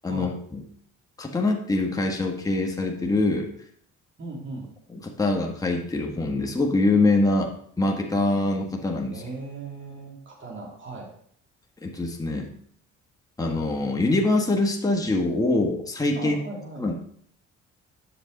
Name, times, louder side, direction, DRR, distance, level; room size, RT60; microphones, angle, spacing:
voice 1, 0.0-0.6 1.2-3.5 4.9-9.2 11.8-12.5 13.4-16.4 16.8-17.0, left 2 dB, 10° left, 1 dB, 1.3 m, -24 dB
voice 2, 4.2-4.7 9.1-11.1 16.1-16.9, right 3 dB, 40° right, -1 dB, 2.7 m, -37 dB
8.2 x 6.6 x 3.8 m, 0.62 s
cardioid pair, 90°, 30 cm